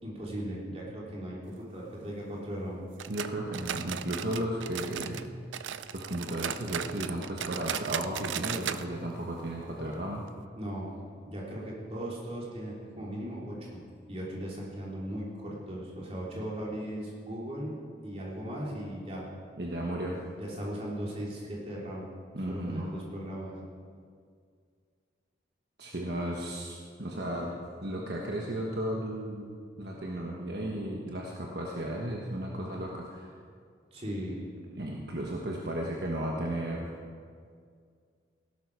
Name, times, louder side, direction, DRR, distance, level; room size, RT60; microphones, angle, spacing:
voice 1, 0.0-2.8 10.6-10.9 11.2-13.8 14.0-17.7 18.0-19.2 20.1-22.0 22.5-23.6 33.9-34.4, equal, 35° right, -5 dB, 3.3 m, -38 dB
sound 1, 3.0-5.3 5.5-8.8 9.1-9.2 9.6-9.7 10.3-10.4, right 9 dB, 90° right, 0.5 m, -36 dB
voice 2, 3.1-5.3 5.9-10.2 19.6-20.2 22.3-22.9 25.8-33.3 34.7-36.9, right 1 dB, 60° right, -2 dB, 1.3 m, -34 dB
16.5 x 12.0 x 4.7 m, 2.1 s
head